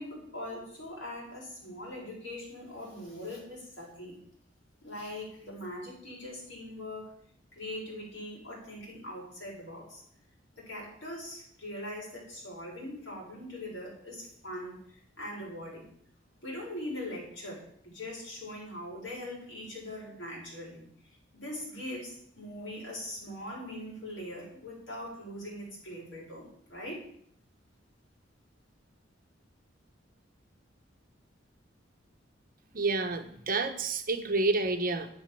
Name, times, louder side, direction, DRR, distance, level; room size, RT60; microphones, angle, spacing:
voice 1, 0.0-4.2 4.8-7.1 7.5-10.0 10.6-15.9 16.4-20.9 21.3-27.0, left 1 dB, 75° left, -3 dB, 7.0 m, -41 dB
voice 2, 32.7-35.1, right 3 dB, 50° right, 7 dB, 1.2 m, -29 dB
11.0 x 10.0 x 7.0 m, 0.64 s
head